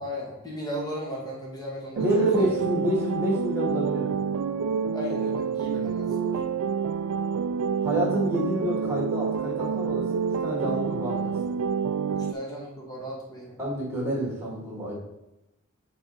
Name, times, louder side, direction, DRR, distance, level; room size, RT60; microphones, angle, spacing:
voice 1, 0.0-2.5 4.9-6.4 12.1-13.6, equal, 20° left, -3 dB, 1.9 m, -36 dB
voice 2, 2.0-4.3 7.8-11.3 13.6-15.0, right 1 dB, 10° right, -4 dB, 2.4 m, -28 dB
sound 1, 2.0-12.3, right 6 dB, 85° right, 0.4 m, -28 dB
5.8 x 4.1 x 5.4 m, 0.95 s
head